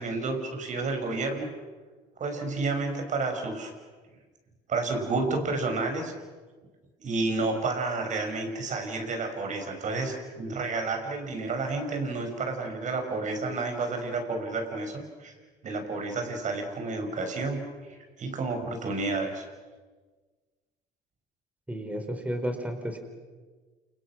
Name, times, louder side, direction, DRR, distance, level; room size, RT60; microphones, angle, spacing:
voice 1, 0.0-1.5 2.2-3.7 4.7-6.1 7.0-15.3 15.6-17.6 18.2-19.4, right 3 dB, 45° right, 5 dB, 6.5 m, -30 dB
voice 2, 21.7-23.0, equal, 10° right, 5 dB, 4.5 m, -32 dB
29.5 x 29.0 x 6.4 m, 1.4 s
cardioid pair, 110°, 17 cm